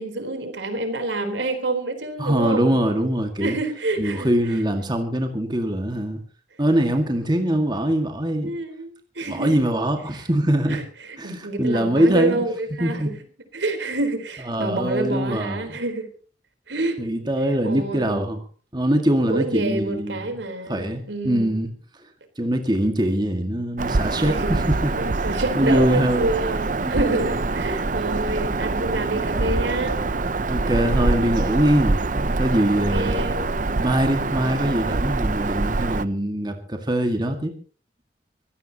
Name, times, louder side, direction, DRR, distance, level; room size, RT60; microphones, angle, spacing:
voice 1, 0.0-2.7 3.4-4.6 8.4-9.6 10.7-13.2 13.5-16.1 16.7-17.0 17.6-18.3 19.3-21.6 24.2-24.5 24.9-30.0 32.7-33.5, right 2 dB, 85° right, 7 dB, 4.1 m, -28 dB
voice 2, 2.2-3.6 4.0-6.2 6.6-8.5 9.3-10.8 11.2-12.4 12.8-13.1 14.5-15.7 17.0-18.4 18.7-20.2 20.7-21.7 22.4-24.9 25.6-26.3 26.8-27.2 30.5-33.2 33.8-37.5, right 1 dB, 25° right, 5 dB, 2.0 m, -23 dB
Bird vocalization bird call bird song, 23.8-36.0, right 3 dB, 45° right, 0.7 m, -25 dB
24.0 x 16.5 x 3.0 m, 0.39 s
head